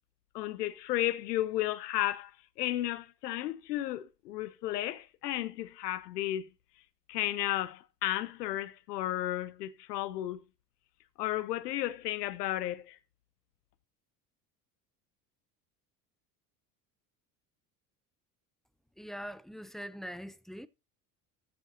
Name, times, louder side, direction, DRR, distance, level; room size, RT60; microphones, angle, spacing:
voice 1, 0.3-2.3 2.6-6.5 7.1-10.4 11.2-13.0, left 14 dB, 85° left, 0.8 m, -33 dB
voice 2, 19.0-20.7, equal, ahead, 0.6 m, -42 dB
13.5 x 7.8 x 2.8 m
hypercardioid pair, 75°, 47 cm